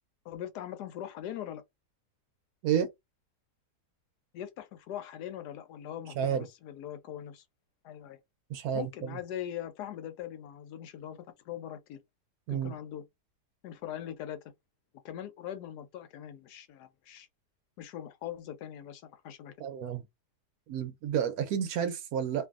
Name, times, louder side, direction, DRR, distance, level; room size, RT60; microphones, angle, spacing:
voice 1, 0.2-1.6 4.3-7.4 7.8-8.2 8.7-12.0 12.5-13.0 13.6-14.4 15.0-17.3 17.8-19.6, left 10 dB, 75° left, 1.1 m, -41 dB
voice 2, 6.2-6.5 8.5-9.2 12.5-12.7 19.6-20.0 20.7-22.5, right 8 dB, 70° right, 1.0 m, -30 dB
2.6 x 2.5 x 2.4 m
omnidirectional pair, 1.8 m